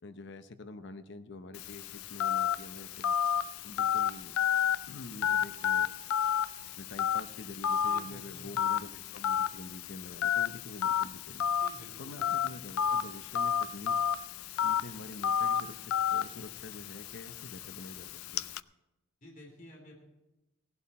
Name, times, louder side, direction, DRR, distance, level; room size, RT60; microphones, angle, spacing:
voice 1, 0.0-3.2 3.6-4.3 4.9-5.9 6.7-11.6 12.0-14.0 14.6-18.5, left 2 dB, 55° left, 10 dB, 0.8 m, -46 dB
Telephone, 1.5-18.6, left 8 dB, 75° left, 0.4 m, -32 dB
voice 2, 7.9-9.0 11.6-12.3 19.2-20.0, equal, 40° left, 0 dB, 3.0 m, -52 dB
17.0 x 11.5 x 4.3 m, 0.98 s
head